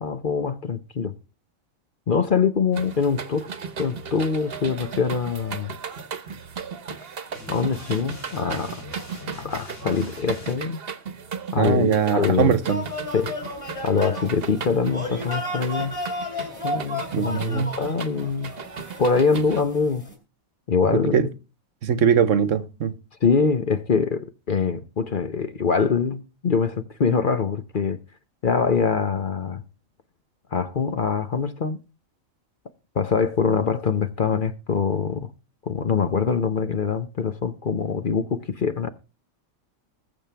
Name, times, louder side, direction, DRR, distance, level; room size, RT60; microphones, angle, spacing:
voice 1, 0.0-1.1 2.1-3.5 3.8-5.7 7.5-8.8 9.3-10.8 11.5-12.6 13.1-13.4 13.8-15.9 16.6-18.5 19.0-20.0 20.7-21.2 23.2-28.0 28.4-29.6 30.5-31.8 32.9-35.3 35.7-38.9, left 5 dB, 45° left, 0.9 m, -24 dB
sound 1, 2.7-19.6, right 6 dB, 50° right, 1.2 m, -36 dB
sound 2, 7.3-10.6, left 4 dB, 60° left, 3.3 m, -42 dB
voice 2, 11.6-12.8 17.1-17.8 21.1-21.3 21.8-22.9, right 7 dB, 65° right, 1.2 m, -21 dB
sound 3, 12.7-20.1, left 1 dB, 25° left, 3.5 m, -33 dB
20.5 x 7.1 x 3.4 m
omnidirectional pair, 1.4 m